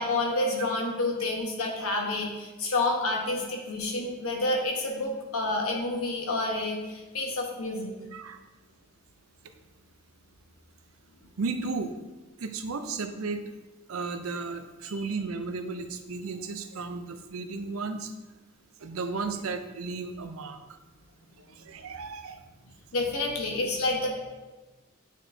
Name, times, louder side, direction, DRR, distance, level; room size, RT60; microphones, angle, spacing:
voice 1, 0.0-7.9 22.9-24.1, left 2 dB, 85° left, 1 dB, 1.2 m, -29 dB
voice 2, 11.4-11.9 12.4-13.4 13.9-18.1 18.8-20.6 21.6-22.4, right 4 dB, 80° right, 8 dB, 0.5 m, -34 dB
8.7 x 4.5 x 2.7 m, 1.2 s
head